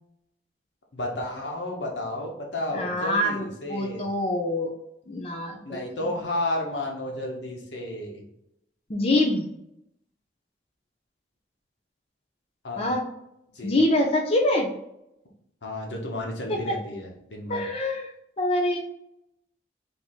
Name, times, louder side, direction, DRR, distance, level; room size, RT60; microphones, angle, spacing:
voice 1, 0.9-4.0 5.6-8.2 12.6-12.9 13.5-13.8 15.6-17.7, left 1 dB, 90° left, 0 dB, 1.1 m, -32 dB
voice 2, 2.7-4.7 5.1-5.8 8.9-9.5 12.8-13.0 13.6-14.7 16.5-16.7 17.5-18.1 18.4-18.8, left 1 dB, 35° left, 1 dB, 0.6 m, -25 dB
3.6 x 2.8 x 4.4 m, 0.79 s
head